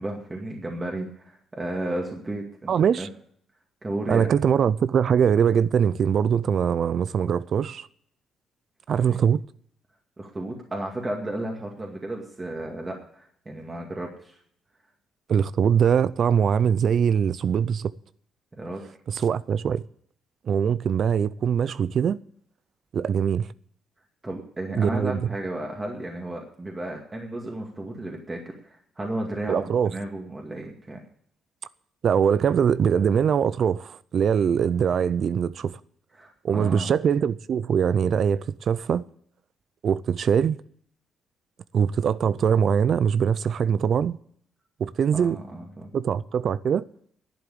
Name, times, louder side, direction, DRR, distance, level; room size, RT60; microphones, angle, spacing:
voice 1, 0.0-3.1 3.8-4.3 9.0-9.2 10.2-14.4 18.5-18.8 24.2-31.0 36.2-36.9 45.1-45.9, right 1 dB, 20° right, 2.2 m, -33 dB
voice 2, 2.7-3.1 4.1-7.9 8.9-9.4 15.3-17.9 19.1-19.8 20.5-22.2 22.9-23.5 24.7-25.2 29.5-29.9 32.0-35.8 36.4-39.0 39.8-40.6 41.7-44.2 44.8-45.4 45.9-46.8, right 7 dB, 55° right, 0.4 m, -22 dB
11.5 x 7.9 x 8.5 m
cardioid pair, 90°, 0 cm